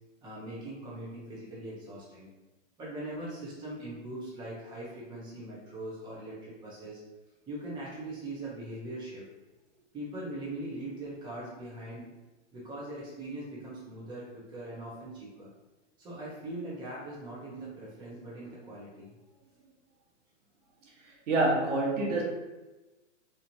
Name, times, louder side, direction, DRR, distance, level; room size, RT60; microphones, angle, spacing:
voice 1, 0.2-2.3 2.8-7.0 7.5-9.2 9.9-12.1 12.5-15.5 16.0-19.1, right 1 dB, 15° right, -7 dB, 0.7 m, -41 dB
voice 2, 21.0-22.2, right 2 dB, 75° right, -2 dB, 1.3 m, -27 dB
4.0 x 3.0 x 2.7 m, 1.1 s
hypercardioid pair, 150°, 37 cm